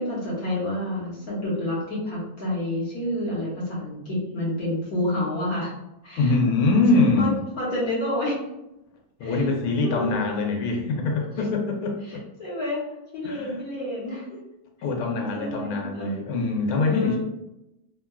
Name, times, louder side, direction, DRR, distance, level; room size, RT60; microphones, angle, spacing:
voice 1, 0.0-5.7 6.0-6.4 6.9-7.3 7.6-8.4 9.2-9.5 9.8-10.3 12.0-12.8 13.1-14.4 15.3-16.2 16.7-17.2, left 1 dB, 50° left, -6 dB, 1.2 m, -29 dB
voice 2, 6.2-7.4 9.2-12.2 13.2-13.5 14.8-17.2, left 3 dB, 80° left, 1 dB, 1.4 m, -23 dB
3.6 x 2.2 x 2.2 m, 0.89 s
omnidirectional pair, 2.4 m